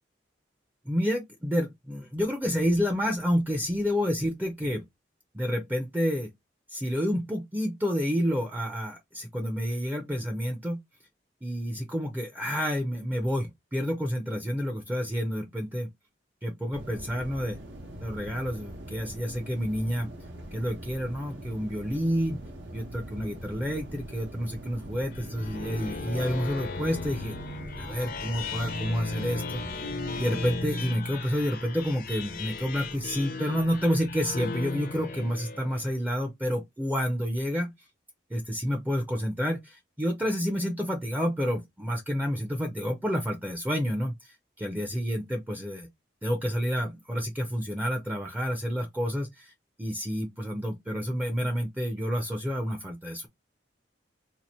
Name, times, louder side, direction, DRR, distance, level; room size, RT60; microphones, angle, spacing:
voice 1, 0.9-4.8 5.3-6.3 6.7-10.8 11.4-15.9 16.4-17.6 18.0-20.1 20.5-22.4 22.7-27.4 27.8-29.9 30.2-37.9 38.3-45.9 46.2-49.5 49.8-53.3, equal, 10° right, 0.5 m, -29 dB
sound 1, 16.7-30.7, right 1 dB, 80° right, 1.0 m, -43 dB
sound 2, 25.1-36.0, left 3 dB, 50° left, 0.5 m, -36 dB
2.9 x 2.5 x 4.1 m
head